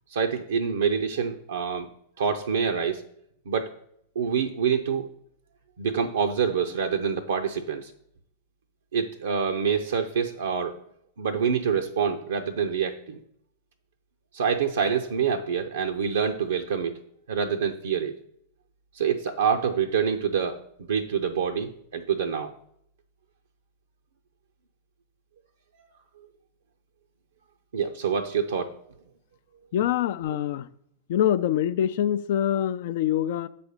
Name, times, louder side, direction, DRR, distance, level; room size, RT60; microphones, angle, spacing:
voice 1, 0.1-1.9 2.2-3.0 3.5-3.7 4.2-5.1 5.8-7.9 8.9-10.8 11.2-13.2 14.3-17.0 17.3-18.1 18.9-22.5 27.7-28.8, right 7 dB, 65° right, 3 dB, 0.5 m, -26 dB
voice 2, 29.7-30.7 31.1-33.5, left 10 dB, 55° left, 13 dB, 0.4 m, -25 dB
6.3 x 4.2 x 6.5 m, 0.72 s
figure-of-eight pair, 90°, 0 cm